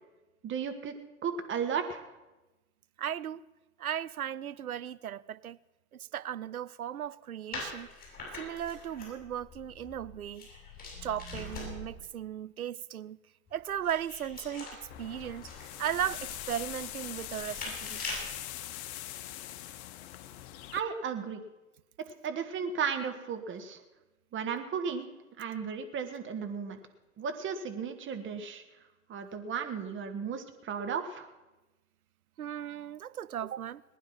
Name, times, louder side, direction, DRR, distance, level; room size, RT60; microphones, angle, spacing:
voice 1, 0.4-1.0 1.2-2.1 20.7-21.4 22.2-23.8 24.3-25.1 25.4-26.8 27.2-28.6 29.1-31.3, right 6 dB, 30° right, 1.7 m, -34 dB
voice 2, 3.0-3.4 3.8-5.6 5.9-7.9 8.3-10.5 11.0-13.2 13.5-14.7 15.0-15.5 15.8-18.2 32.4-33.8, right 10 dB, 90° right, 0.5 m, -36 dB
sound 1, 7.5-12.0 13.5-18.4, left 3 dB, 20° left, 7.3 m, -43 dB
sound 2, 14.9-20.8, left 13 dB, 50° left, 0.9 m, -42 dB
19.5 x 10.0 x 5.9 m
figure-of-eight pair, 90°, 42 cm